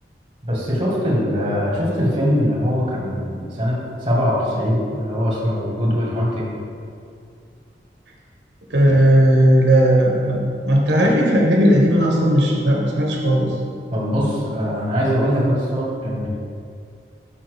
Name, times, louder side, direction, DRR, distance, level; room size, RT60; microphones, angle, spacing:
voice 1, 0.4-6.5 13.9-16.3, equal, 30° right, -5 dB, 1.7 m, -22 dB
voice 2, 8.7-13.5, equal, 85° right, -2 dB, 1.1 m, -16 dB
5.9 x 4.2 x 6.3 m, 2.3 s
head